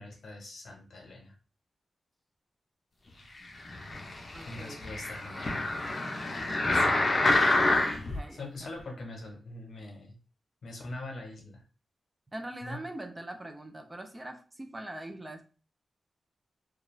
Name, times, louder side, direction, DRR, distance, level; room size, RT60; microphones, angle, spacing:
voice 1, 0.0-1.3 4.5-5.6 6.3-7.5 8.3-10.2 10.6-11.6 12.6-12.8, left 2 dB, 70° left, 0.8 m, -43 dB
sound 1, 3.6-8.2 8.8-8.9, left 2 dB, 40° left, 0.5 m, -27 dB
voice 2, 4.3-4.8 5.1-6.0 7.4-8.7 12.3-15.4, right 1 dB, 20° right, 0.4 m, -43 dB
2.3 x 2.3 x 3.0 m
wide cardioid pair, 115°, 0 cm